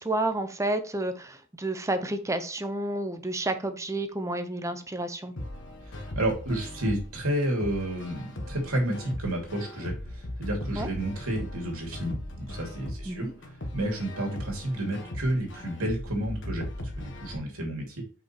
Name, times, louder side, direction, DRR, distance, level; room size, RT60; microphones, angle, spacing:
voice 1, 0.0-5.3 10.8-10.9 13.1-13.3, right 2 dB, 15° right, 8 dB, 0.8 m, -30 dB
sound 1, 5.4-17.4, left 1 dB, 60° left, 1.5 m, -38 dB
voice 2, 6.1-13.3 13.7-18.0, right 1 dB, 85° right, 0 dB, 2.7 m, -31 dB
5.7 x 5.3 x 4.5 m, 0.37 s
head